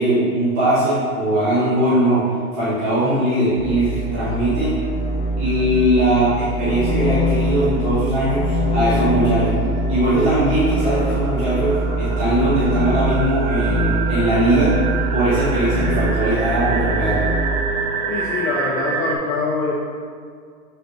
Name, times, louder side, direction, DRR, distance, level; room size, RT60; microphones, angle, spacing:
voice 1, 0.0-2.2 2.5-4.7 5.4-9.6 9.9-14.7 15.1-17.2, right 1 dB, 10° right, -13 dB, 0.4 m, -20 dB
sound 1, 3.6-17.7, right 1 dB, 35° left, 0.7 m, -23 dB
sound 2, 6.3-6.4 6.7-19.2, right 5 dB, 80° right, 0.8 m, -29 dB
voice 2, 18.1-19.7, left 4 dB, 65° left, -3 dB, 0.9 m, -24 dB
6.5 x 4.8 x 3.0 m, 2.1 s
hypercardioid pair, 165°, 44 cm